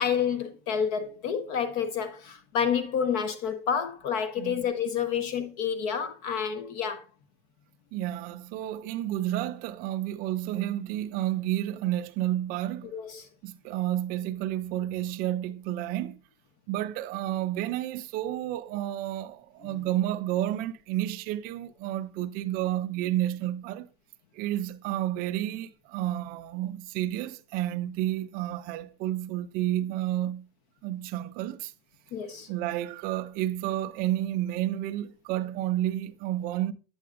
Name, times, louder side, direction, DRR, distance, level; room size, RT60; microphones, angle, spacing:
voice 1, 0.0-7.0 12.9-13.3 32.1-32.5, left 7 dB, 45° left, 0.7 m, -29 dB
voice 2, 7.9-12.9 13.4-16.2 16.7-23.9 24.3-30.4 30.8-31.7 32.5-36.7, right 13 dB, 30° right, 0.4 m, -30 dB
8.5 x 7.6 x 2.5 m
supercardioid pair, 155°, 31 cm